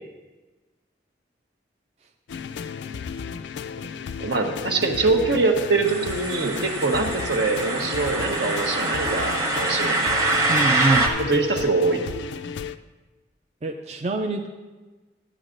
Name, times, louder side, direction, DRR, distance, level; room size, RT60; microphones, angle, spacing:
sound 1, 2.3-12.8, left 6 dB, 85° left, 0.4 m, -34 dB
voice 1, 4.2-10.5 11.3-12.0, right 3 dB, 75° right, 3 dB, 1.2 m, -24 dB
sound 2, 5.8-11.1, right 2 dB, 20° right, 0.8 m, -25 dB
voice 2, 10.5-11.1 13.6-14.5, right 2 dB, 35° right, 3 dB, 0.4 m, -25 dB
14.0 x 9.6 x 2.6 m, 1.2 s
head